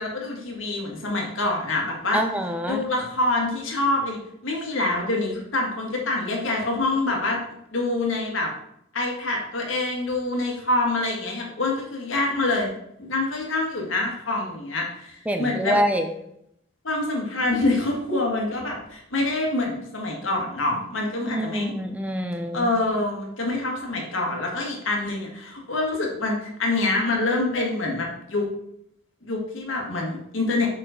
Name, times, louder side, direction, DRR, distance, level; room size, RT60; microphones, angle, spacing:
voice 1, 0.0-2.2 2.6-7.4 7.7-8.5 8.9-12.7 13.0-15.8 16.8-21.7 22.5-28.5 29.2-30.7, left 2 dB, 70° left, 0 dB, 1.9 m, -26 dB
voice 2, 2.1-2.9 15.3-16.1 21.3-22.7, equal, 5° right, 6 dB, 0.6 m, -26 dB
6.1 x 4.9 x 5.2 m, 0.76 s
head